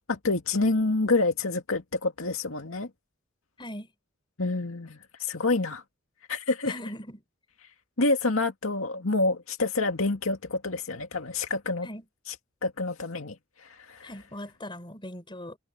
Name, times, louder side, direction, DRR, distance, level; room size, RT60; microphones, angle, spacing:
voice 1, 0.1-2.9 4.4-5.8 6.3-6.7 8.0-11.9 12.3-12.4 12.6-13.4 13.6-14.1, left 3 dB, 75° left, 2.2 m, -27 dB
voice 2, 3.6-3.9 6.6-7.2 11.8-12.0 14.0-15.6, left 1 dB, 25° left, 4.3 m, -40 dB
head